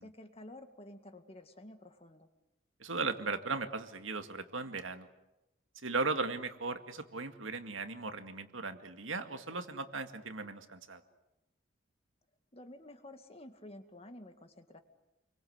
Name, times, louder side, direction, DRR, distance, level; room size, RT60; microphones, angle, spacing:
voice 1, 0.0-2.3 12.5-14.8, left 1 dB, 30° left, 7 dB, 2.1 m, -51 dB
voice 2, 2.8-5.1 5.8-11.0, right 3 dB, 80° right, 7 dB, 2.1 m, -37 dB
29.5 x 23.5 x 8.1 m, 0.95 s
head